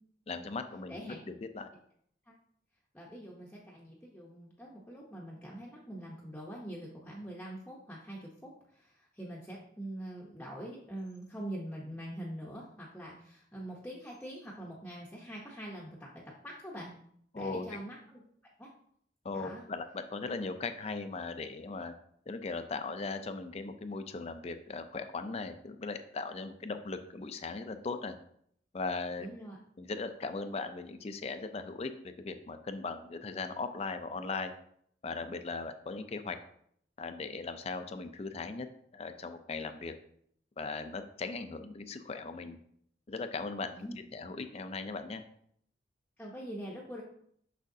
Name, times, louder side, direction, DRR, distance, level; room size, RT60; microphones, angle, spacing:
voice 1, 0.3-1.0 1.5-1.7 17.3-17.7 19.2-21.9 22.3-28.1 28.7-29.3 29.8-34.5 35.0-36.4 37.0-38.7 38.9-39.9 40.6-42.6 43.1-45.2, left 3 dB, 35° left, 8 dB, 0.4 m, -38 dB
voice 2, 0.9-1.2 2.2-2.3 2.9-16.9 17.3-18.2 18.6-18.7 19.3-19.6 29.2-29.6 43.7-44.0 46.2-47.0, right 1 dB, 5° left, -4 dB, 0.7 m, -44 dB
6.3 x 6.2 x 2.7 m, 0.67 s
head